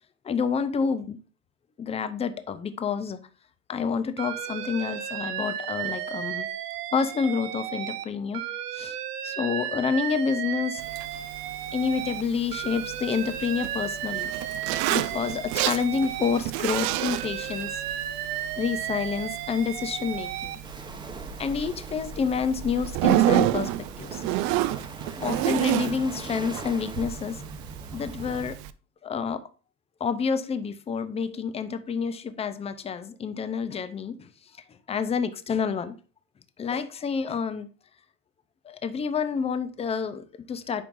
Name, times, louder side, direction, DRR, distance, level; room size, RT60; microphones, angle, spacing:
voice 1, 0.2-1.2 1.8-3.2 3.7-6.5 6.9-8.4 8.7-9.0 9.2-10.8 11.7-14.3 14.9-17.8 18.6-20.6 21.4-23.7 24.0-24.2 25.2-27.4 27.9-28.6 29.0-29.4 30.0-34.3 34.9-36.0 36.6-37.7 38.6-40.8, left 6 dB, 15° left, 0.5 m, -28 dB
Alarm, 4.2-8.0 8.3-12.2 12.5-16.4 16.7-20.6, right 10 dB, 85° right, 0.9 m, -34 dB
Zipper (clothing), 10.8-28.7, right 15 dB, 40° right, 0.4 m, -30 dB
sound 1, 20.6-28.5, right 2 dB, 10° right, 1.0 m, -40 dB
10.5 x 4.5 x 2.6 m
hypercardioid pair, 100°, 45 cm